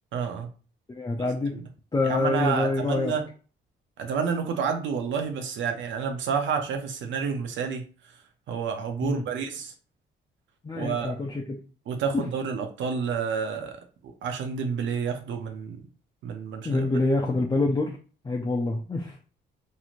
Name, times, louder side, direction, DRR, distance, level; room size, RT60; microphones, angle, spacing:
voice 1, 0.1-0.5 1.5-1.7 2.0-3.3 4.0-7.8 8.5-9.7 10.7-11.2 11.9-13.8 14.2-15.8 16.2-16.9, right 6 dB, 70° right, 0.6 m, -29 dB
voice 2, 0.9-1.5 1.9-3.1 9.0-9.2 10.6-11.6 12.1-12.2 16.6-18.0 18.2-19.1, left 2 dB, 20° left, 0.5 m, -26 dB
3.0 x 2.7 x 2.5 m
cardioid pair, 90°, 20 cm